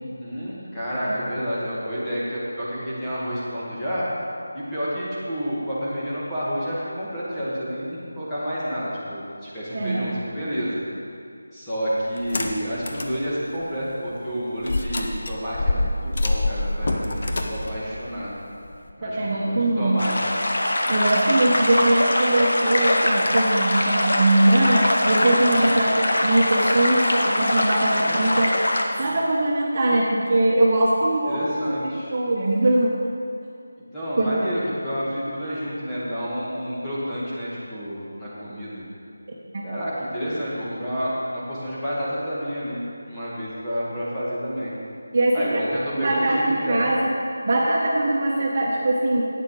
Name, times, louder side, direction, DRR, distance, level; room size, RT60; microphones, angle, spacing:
voice 1, 0.0-4.1 4.5-10.8 11.5-18.3 19.0-20.3 25.5-25.7 27.9-28.4 29.0-29.1 31.3-32.1 33.9-38.8 39.6-42.8 43.1-44.7 45.3-46.8, equal, 5° left, -13 dB, 2.3 m, -29 dB
voice 2, 9.7-10.1 19.0-20.0 20.9-28.6 29.0-32.9 34.2-34.5 39.5-39.6 45.1-45.6 46.0-47.2 47.4-49.3, right 1 dB, 40° right, -3 dB, 1.4 m, -21 dB
sound 1, 12.2-13.2 13.6-13.7 14.6-18.9, left 2 dB, 50° left, 1.0 m, -26 dB
sound 2, 20.0-28.8, left 1 dB, 70° left, 1.3 m, -22 dB
10.5 x 9.0 x 5.0 m, 2.4 s
figure-of-eight pair, 165°, 0 cm